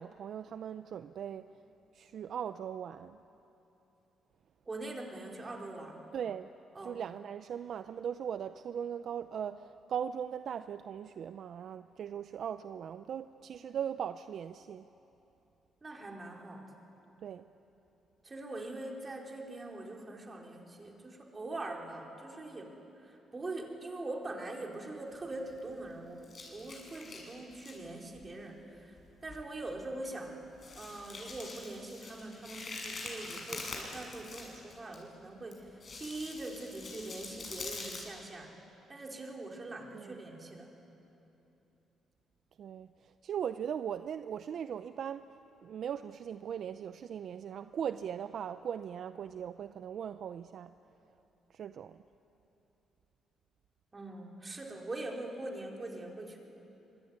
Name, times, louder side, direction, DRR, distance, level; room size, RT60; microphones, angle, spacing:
voice 1, 0.0-1.5 1.9-3.2 6.1-6.5 6.8-14.8 17.2-17.4 39.9-40.2 42.6-45.2 45.6-50.7 51.5-52.0, right 8 dB, 65° right, 11 dB, 0.6 m, -39 dB
voice 2, 4.6-6.0 6.7-7.0 15.8-16.7 18.2-26.2 26.5-30.4 30.7-38.5 38.9-40.7 53.9-56.4, right 2 dB, 30° right, 0 dB, 4.4 m, -43 dB
sound 1, 25.1-25.9 26.2-27.8 28.1-28.3 29.0-29.1 29.3-29.5 29.9-30.0 30.5-35.0 35.5-38.0, left 3 dB, 45° left, 7.1 m, -45 dB
25.5 x 23.0 x 9.6 m, 3.0 s
cardioid pair, 90°, 0 cm